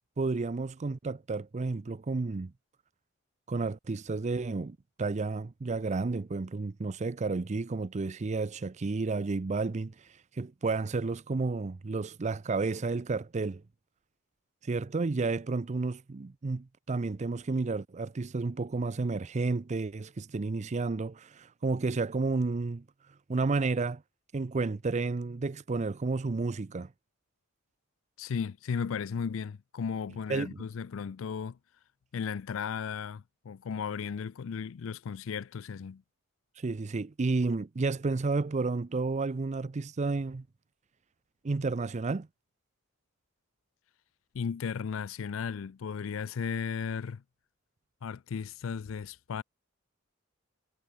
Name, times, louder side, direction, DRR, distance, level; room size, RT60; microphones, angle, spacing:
voice 1, 0.2-2.5 3.5-10.1 10.3-13.6 14.6-22.8 23.3-24.0 24.3-26.9 30.3-30.6 36.6-40.4 41.4-42.3, right 3 dB, 35° right, 0.5 m, -31 dB
voice 2, 28.2-31.6 32.1-36.0 44.3-47.2 48.0-49.4, left 6 dB, 70° left, 0.4 m, -35 dB
head